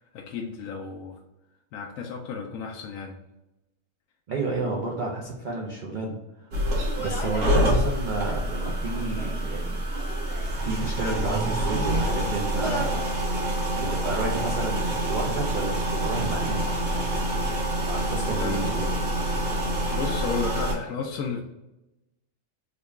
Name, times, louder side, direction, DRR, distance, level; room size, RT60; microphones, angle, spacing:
voice 1, 0.1-1.2 1.7-3.2 7.1-7.3 18.4-18.7 19.9-21.4, left 5 dB, 75° left, 1 dB, 0.9 m, -33 dB
voice 2, 4.3-6.1 6.4-6.5 7.0-9.8 10.6-13.0 13.8-16.7 17.9-18.9, right 3 dB, 60° right, -2 dB, 0.5 m, -31 dB
sound 1, 6.5-20.7, right 1 dB, 85° right, 1.5 m, -26 dB
Human voice, 6.8-7.6 8.5-9.4 9.9-10.5 11.2-12.2 12.5-13.1 13.5-14.2, right 1 dB, 15° left, 0.9 m, -38 dB
3.8 x 2.2 x 3.4 m, 0.95 s
omnidirectional pair, 1.5 m